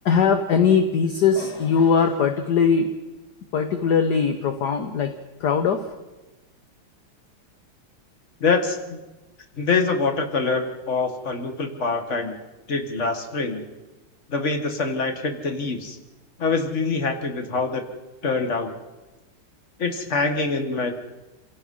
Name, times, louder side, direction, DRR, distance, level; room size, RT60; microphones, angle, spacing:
voice 1, 0.0-2.9 3.5-5.1 5.4-5.9, left 6 dB, 55° left, 6 dB, 1.5 m, -20 dB
voice 2, 8.4-9.0 9.6-12.4 12.7-13.6 14.3-16.0 16.4-17.8 18.2-18.7 19.8-20.9, left 4 dB, 35° left, 5 dB, 2.0 m, -24 dB
28.0 x 16.5 x 5.6 m, 1.1 s
omnidirectional pair, 2.4 m